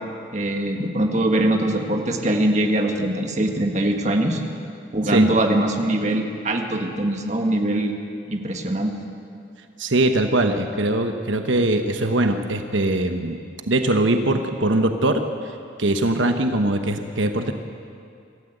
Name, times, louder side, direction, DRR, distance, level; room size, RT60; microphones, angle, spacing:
voice 1, 0.3-4.4 4.9-7.9 8.3-9.0, right 1 dB, 35° right, 3 dB, 1.8 m, -22 dB
voice 2, 9.8-13.4 13.7-15.2 15.8-17.5, right 1 dB, 80° right, 6 dB, 1.1 m, -21 dB
26.0 x 14.0 x 8.0 m, 2.5 s
head